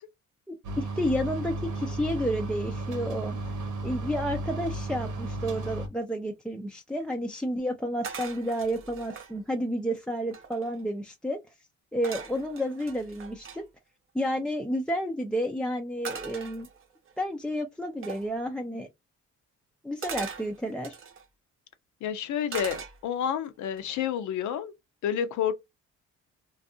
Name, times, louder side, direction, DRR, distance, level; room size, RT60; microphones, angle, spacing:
voice 1, 0.5-3.4 3.8-11.4 11.9-13.7 14.1-16.7 17.2-18.9 19.8-21.0, equal, 5° left, 0.3 m, -31 dB
sound 1, 0.6-5.9, right 2 dB, 80° right, 0.9 m, -34 dB
sound 2, 8.0-9.3 9.9-10.0 10.2-10.8 12.0-13.6 16.0-17.1 18.0-18.3 20.0-21.2 22.5-23.3 23.8-24.1, right 6 dB, 45° right, 0.7 m, -40 dB
voice 2, 22.0-24.7 25.0-25.5, left 9 dB, 75° left, 0.6 m, -29 dB
2.6 x 2.4 x 2.6 m
cardioid pair, 90°, 30 cm